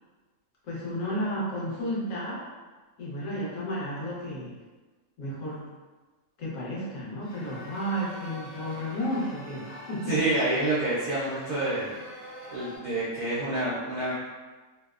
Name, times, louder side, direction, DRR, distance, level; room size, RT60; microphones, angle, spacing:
voice 1, 0.6-2.4 3.0-4.5 5.2-5.6 6.4-10.1, equal, 70° left, -6 dB, 1.1 m, -32 dB
sound 1, 7.2-12.8, equal, 45° left, 0.5 m, -45 dB
voice 2, 10.1-12.0 12.5-14.1, right 2 dB, 65° right, -9 dB, 0.4 m, -28 dB
2.8 x 2.0 x 2.3 m, 1.3 s
omnidirectional pair, 1.5 m